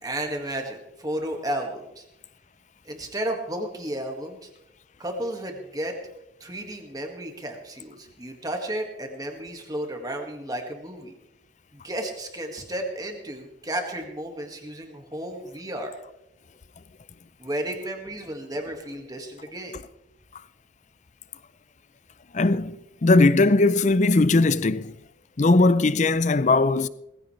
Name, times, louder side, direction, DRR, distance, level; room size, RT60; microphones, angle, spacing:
voice 1, 0.0-2.0 2.8-4.5 5.0-5.9 6.4-11.1 11.7-15.9 17.4-19.8, right 1 dB, 20° right, 1.9 m, -33 dB
voice 2, 22.3-22.8 23.0-24.9 25.4-26.9, left 2 dB, 35° left, 0.5 m, -19 dB
19.0 x 15.5 x 3.3 m
head